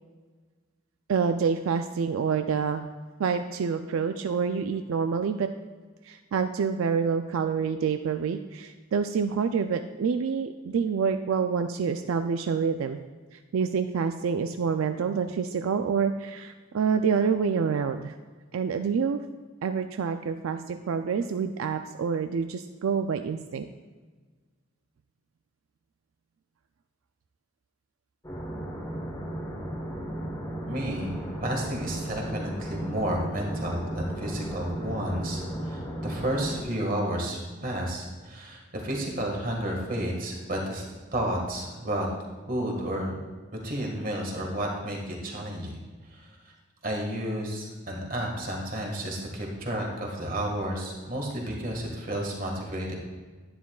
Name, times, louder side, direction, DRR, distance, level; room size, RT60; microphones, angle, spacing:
voice 1, 1.1-2.9 3.2-5.5 6.1-13.0 13.3-18.1 18.5-19.2 19.6-23.7, right 6 dB, 85° right, 8 dB, 0.4 m, -27 dB
sound 1, 28.2-36.6, right 1 dB, 15° left, 1.0 m, -35 dB
voice 2, 30.7-40.8 41.1-42.1 42.5-43.2 43.6-45.8 46.1-46.5 46.8-52.9, right 1 dB, 40° right, 0 dB, 1.7 m, -31 dB
11.0 x 9.5 x 2.3 m, 1.4 s
head